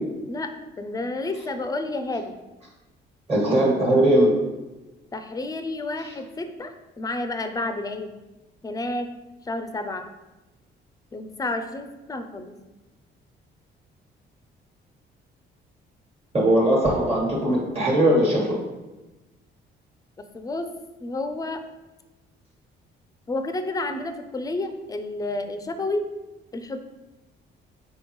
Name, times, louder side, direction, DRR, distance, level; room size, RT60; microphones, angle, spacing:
voice 1, 0.3-2.4 5.1-8.1 8.6-9.1 9.4-10.1 11.1-12.5 20.2-20.7 21.0-21.6 23.3-26.0 26.5-26.8, left 2 dB, 20° left, 8 dB, 0.4 m, -30 dB
voice 2, 3.3-4.3 16.3-18.4, right 1 dB, 30° right, -4 dB, 1.3 m, -19 dB
4.3 x 3.5 x 3.0 m, 1.1 s
cardioid pair, 90°, 20 cm